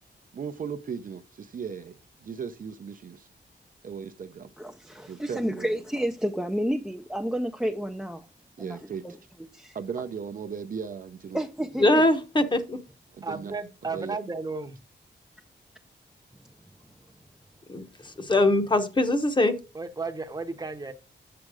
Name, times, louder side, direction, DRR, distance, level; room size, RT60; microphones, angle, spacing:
voice 1, 0.3-3.3 3.8-4.5 5.1-5.7 8.6-9.1 9.7-11.4 13.1-13.5 13.9-14.2, right 6 dB, 50° right, 0.6 m, -37 dB
voice 2, 4.6-8.3 8.6-8.8 9.0-9.1 9.5-9.8 11.3-12.1, equal, 5° right, 0.5 m, -30 dB
voice 3, 11.8-12.8 17.7-19.6, left 1 dB, 25° left, 0.9 m, -22 dB
voice 4, 13.2-14.8 19.7-20.9, right 4 dB, 20° right, 0.9 m, -34 dB
7.7 x 7.1 x 4.8 m
wide cardioid pair, 180°, 19 cm